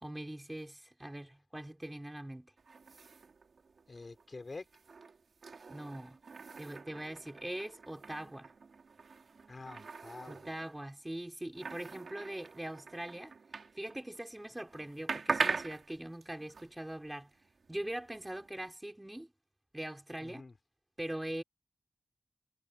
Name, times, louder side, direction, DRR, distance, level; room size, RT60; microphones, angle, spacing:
voice 1, 0.0-2.5 5.7-6.2 6.6-8.5 10.3-13.3 13.8-17.3 17.7-19.3 19.7-20.4 21.0-21.4, right 1 dB, 15° right, 4.8 m, -42 dB
sound 1, 2.6-14.3 14.6-18.7, right 4 dB, 85° right, 2.9 m, -42 dB
voice 2, 3.9-4.7 9.5-10.5 20.2-20.5, left 3 dB, 45° left, 5.4 m, -47 dB
wide cardioid pair, 90°, 0 cm